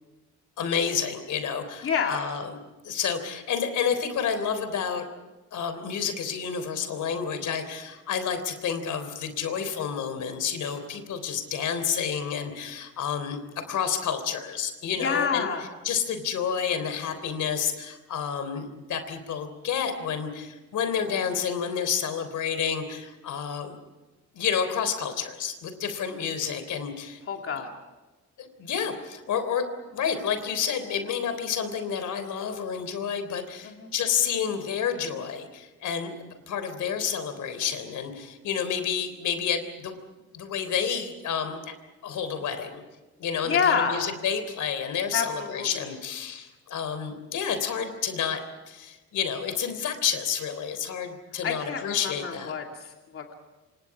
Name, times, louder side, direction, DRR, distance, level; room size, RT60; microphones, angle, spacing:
voice 1, 0.6-2.6 2.8-5.1 5.5-15.5 15.8-23.8 24.3-27.2 28.4-40.0 40.3-41.7 42.0-42.8 43.2-52.5, left 7 dB, 80° left, 9 dB, 3.5 m, -30 dB
voice 2, 1.8-2.2 15.0-15.7 27.3-27.7 33.6-33.9 43.4-44.0 45.1-45.9 51.4-53.3, left 6 dB, 50° left, 2 dB, 2.6 m, -28 dB
28.0 x 26.5 x 4.9 m, 1.1 s
wide cardioid pair, 170°, 30 cm